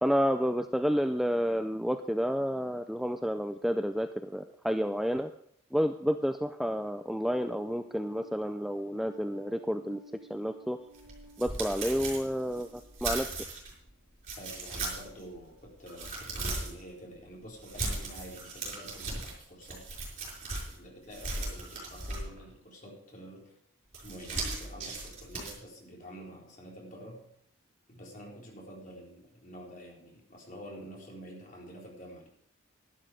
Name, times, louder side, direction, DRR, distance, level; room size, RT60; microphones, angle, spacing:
voice 1, 0.0-5.3 5.7-10.0 10.3-10.8 11.4-12.7 13.0-13.3, equal, ahead, 7 dB, 0.4 m, -30 dB
sound 1, 7.2-13.8, right 2 dB, 70° right, 1.6 m, -56 dB
sound 2, 10.9-13.7 14.2-15.2 15.6-16.8 17.6-20.8 21.1-22.5 23.9-25.5, right 2 dB, 35° right, 5.8 m, -37 dB
voice 2, 14.4-19.9 20.4-23.5 24.0-27.2 27.9-32.3, equal, 40° left, -2 dB, 4.1 m, -48 dB
11.5 x 11.5 x 5.0 m, 0.69 s
head